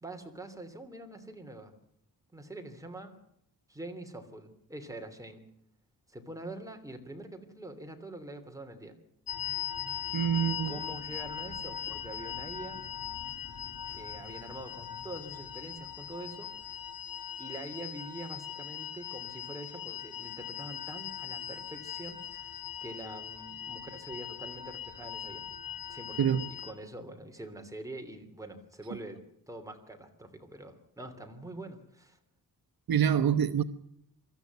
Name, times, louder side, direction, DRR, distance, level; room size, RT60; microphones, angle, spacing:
voice 1, 0.0-1.7 2.3-3.2 3.7-5.5 6.1-9.0 10.7-12.8 13.9-16.8 17.4-25.4 25.9-29.2 29.5-32.2, right 1 dB, 10° right, 5 dB, 3.0 m, -45 dB
sound 1, 9.3-26.7, left 10 dB, 65° left, 3.0 m, -40 dB
voice 2, 10.1-10.8 26.2-26.5 32.9-33.6, right 9 dB, 70° right, 12 dB, 1.0 m, -26 dB
24.0 x 13.5 x 9.4 m, 0.74 s
wide cardioid pair, 145°, 37 cm